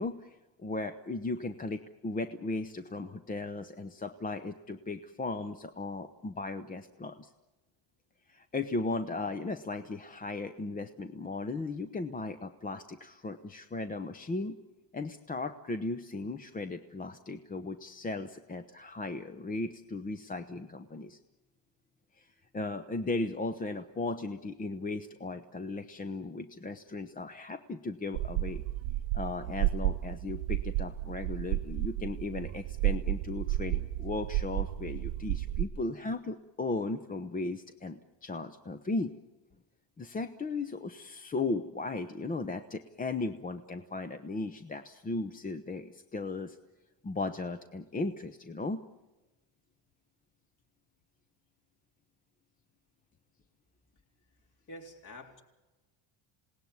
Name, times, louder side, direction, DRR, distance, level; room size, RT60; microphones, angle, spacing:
voice 1, 0.0-7.3 8.3-14.6 14.9-21.2 22.2-22.3 22.5-28.6 29.1-39.1 40.0-46.6 47.0-48.8, left 3 dB, 15° left, 10 dB, 0.8 m, -36 dB
sound 1, 28.1-35.7, right 15 dB, 85° right, 1.1 m, -32 dB
voice 2, 54.4-55.4, left 1 dB, 40° left, 3 dB, 3.7 m, -48 dB
27.0 x 18.5 x 9.6 m, 1.1 s
cardioid pair, 130°, 48 cm